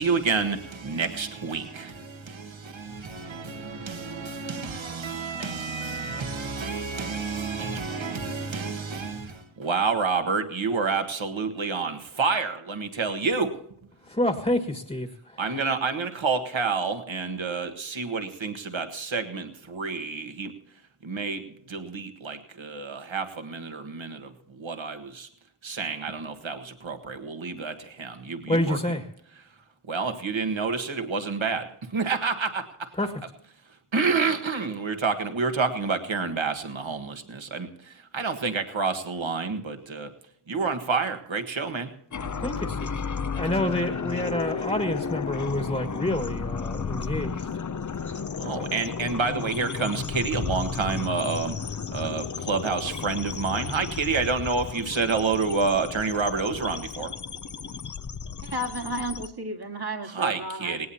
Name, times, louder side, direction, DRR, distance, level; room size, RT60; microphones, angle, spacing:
voice 1, 0.0-13.6 15.4-20.5 21.0-25.3 25.6-28.8 29.9-32.9 33.9-40.1 40.5-41.9 48.1-51.6 51.9-57.1 60.1-60.9, right 4 dB, 65° right, 6 dB, 1.6 m, -29 dB
voice 2, 14.1-15.1 28.5-29.0 33.0-33.1 42.4-42.9 43.3-47.4, left 1 dB, 15° left, 4 dB, 1.6 m, -27 dB
sound 1, 42.1-59.3, left 6 dB, 35° left, 0.6 m, -33 dB
voice 3, 58.4-60.9, right 1 dB, 50° right, 3 dB, 2.0 m, -33 dB
19.0 x 18.0 x 2.8 m, 0.70 s
wide cardioid pair, 70°, 50 cm